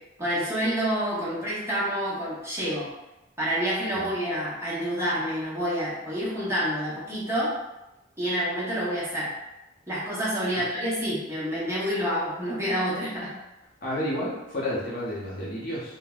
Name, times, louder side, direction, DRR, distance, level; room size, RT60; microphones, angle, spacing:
voice 1, 0.2-2.9 3.4-7.5 8.2-9.3 9.9-13.3, equal, 15° right, -9 dB, 0.8 m, -28 dB
voice 2, 13.8-16.0, left 1 dB, 45° left, -6 dB, 0.7 m, -31 dB
3.2 x 2.1 x 2.3 m, 0.96 s
head